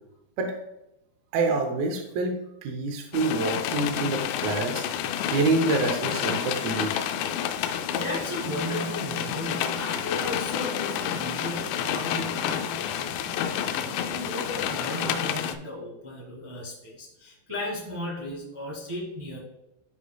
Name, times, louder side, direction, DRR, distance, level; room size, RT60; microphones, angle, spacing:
voice 1, 1.3-4.8 5.3-7.1, right 3 dB, 80° right, 3 dB, 2.2 m, -27 dB
sound 1, 3.1-15.6, left 9 dB, 85° left, 2.7 m, -29 dB
voice 2, 7.6-19.4, left 1 dB, 25° right, -5 dB, 0.6 m, -35 dB
13.0 x 4.5 x 2.3 m, 0.89 s
omnidirectional pair, 5.0 m